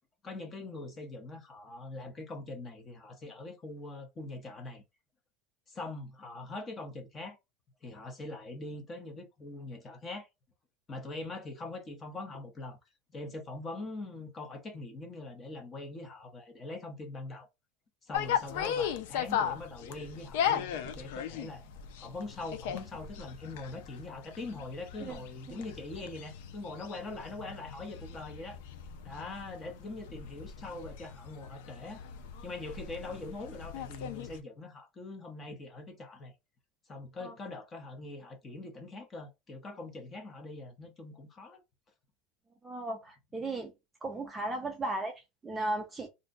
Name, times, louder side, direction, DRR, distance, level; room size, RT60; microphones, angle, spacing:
voice 1, 0.2-4.8 5.7-7.4 7.8-10.3 10.9-12.8 13.1-17.5 18.0-21.6 22.0-28.6 29.0-32.0 32.4-36.3 36.9-41.6, left 2 dB, 20° left, 0.7 m, -42 dB
sound 1, 18.1-34.4, left 8 dB, 75° left, 0.5 m, -38 dB
voice 2, 42.6-43.7 44.0-46.1, right 2 dB, 10° right, 0.4 m, -36 dB
2.6 x 2.2 x 3.7 m
supercardioid pair, 170°, 0 cm